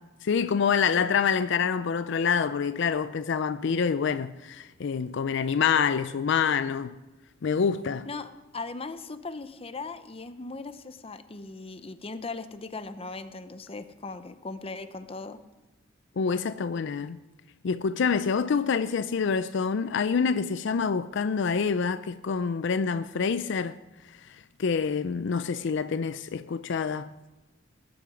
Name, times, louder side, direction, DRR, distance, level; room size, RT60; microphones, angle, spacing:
voice 1, 0.2-6.9 7.4-8.1 16.2-17.2 17.6-23.7 24.2-27.1, left 6 dB, 65° left, 0.4 m, -26 dB
voice 2, 8.1-15.4, left 3 dB, 30° left, 0.7 m, -38 dB
19.5 x 7.9 x 5.1 m
head